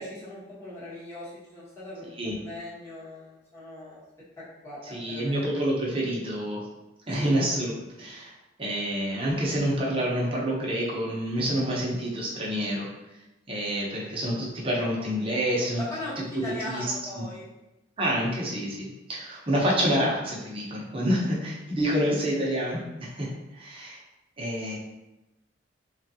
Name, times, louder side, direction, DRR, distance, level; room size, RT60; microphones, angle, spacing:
voice 1, 0.0-4.0 4.4-5.4 7.2-7.4 15.8-17.5, left 1 dB, 15° left, -10 dB, 1.0 m, -39 dB
voice 2, 4.9-6.6 7.1-8.3 8.6-12.9 13.5-15.8 16.7-16.8 17.2-17.3 18.0-23.3 23.5-24.0 24.4-24.8, equal, 30° right, -4 dB, 0.7 m, -28 dB
3.2 x 2.3 x 2.7 m, 0.98 s
head